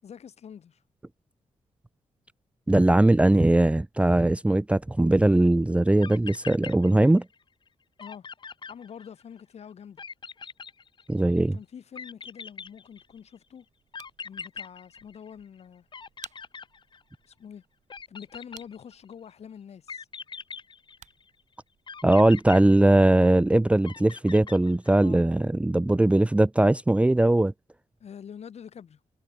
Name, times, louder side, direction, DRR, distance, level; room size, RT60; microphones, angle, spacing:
voice 1, 0.0-0.8 8.0-8.3 8.7-10.0 11.5-13.6 14.2-15.9 17.2-17.6 18.1-20.1 25.0-25.2 28.0-29.0, left 8 dB, 65° left, 6.7 m, -45 dB
voice 2, 2.7-7.2 11.1-11.6 22.0-27.5, right 1 dB, 10° right, 0.7 m, -20 dB
sound 1, 5.7-5.8 6.0-7.4 7.7-7.8 8.0-9.4 10.0-11.4 12.0-13.3 13.9-15.6 15.9-17.3 17.9-19.1 19.9-21.3 21.9-23.4 23.8-25.1, left 5 dB, 40° left, 1.6 m, -42 dB
sound 2, 12.5-22.5, right 10 dB, 85° right, 6.3 m, -55 dB
wide cardioid pair, 120°, 12 cm